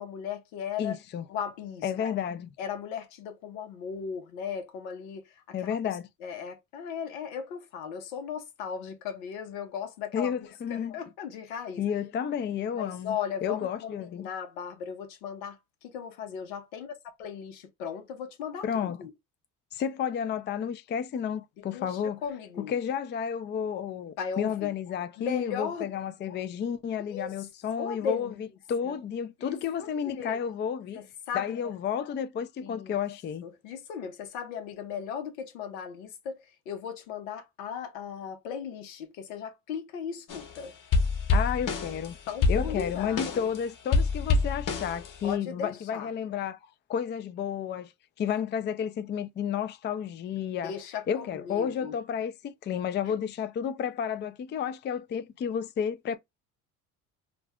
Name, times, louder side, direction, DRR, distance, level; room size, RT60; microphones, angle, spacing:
voice 1, 0.0-0.9 1.3-2.1 2.6-5.4 6.2-10.3 10.7-11.9 12.8-19.1 21.7-22.7 24.2-24.7 25.2-25.9 27.0-27.4 27.8-28.4 28.8-29.0 29.4-30.4 30.9-31.7 32.6-32.9 33.4-40.7 42.3-43.5 45.2-46.1 50.6-51.9, left 7 dB, 85° left, 0.9 m, -37 dB
voice 2, 0.8-1.2 1.8-2.5 5.5-6.1 10.1-11.0 11.8-14.3 18.6-19.0 19.7-22.2 22.6-28.3 28.7-31.0 31.3-33.5 41.3-42.2 42.5-46.6 46.9-47.9 48.2-50.7 51.1-56.2, left 8 dB, 30° left, 0.4 m, -31 dB
sound 1, 40.3-40.6 40.9-43.6 43.9-45.3, left 4 dB, 50° left, 1.1 m, -26 dB
2.5 x 2.1 x 3.5 m
hypercardioid pair, 70°, 41 cm